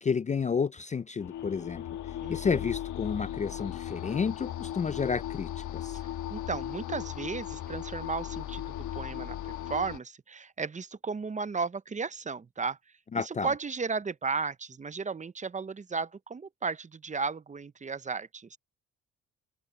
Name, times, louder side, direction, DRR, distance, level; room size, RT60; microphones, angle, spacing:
voice 1, 0.0-1.8 2.3-6.0 13.1-13.5, left 6 dB, 25° left, 0.4 m, -31 dB
sound 1, 1.2-10.0, left 12 dB, 75° left, 1.3 m, -37 dB
voice 2, 2.2-2.6 6.3-12.8 13.1-18.6, right 4 dB, 25° right, 0.7 m, -34 dB
cardioid pair, 90°, 30 cm